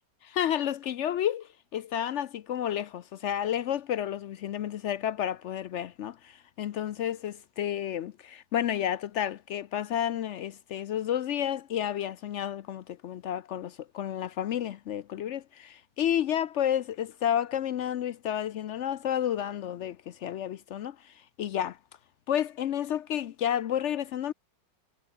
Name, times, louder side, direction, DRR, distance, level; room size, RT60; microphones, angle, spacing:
voice 1, 0.4-21.8 22.3-24.3, left 10 dB, 80° left, 0.6 m, -31 dB
omnidirectional pair, 1.9 m